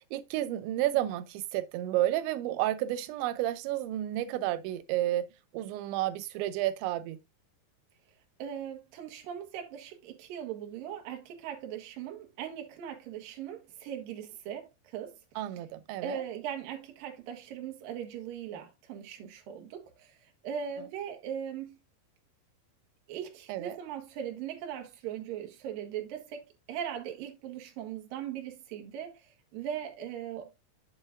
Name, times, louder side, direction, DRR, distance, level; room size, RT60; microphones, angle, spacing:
voice 1, 0.0-5.3 5.5-7.2 15.4-16.2 23.5-23.8, right 14 dB, 80° right, 2.9 m, -31 dB
voice 2, 8.4-15.2 16.0-21.8 23.1-30.5, right 9 dB, 60° right, 2.7 m, -39 dB
8.0 x 7.5 x 2.5 m
omnidirectional pair, 5.4 m